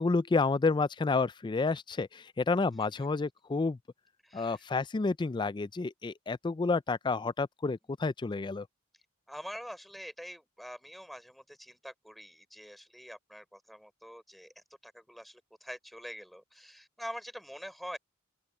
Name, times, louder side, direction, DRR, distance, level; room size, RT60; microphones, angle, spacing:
voice 1, 0.0-3.8 4.3-8.7, left 3 dB, 25° left, 0.4 m, -30 dB
voice 2, 4.2-4.7 9.3-18.0, equal, ahead, 5.4 m, -45 dB
open air
head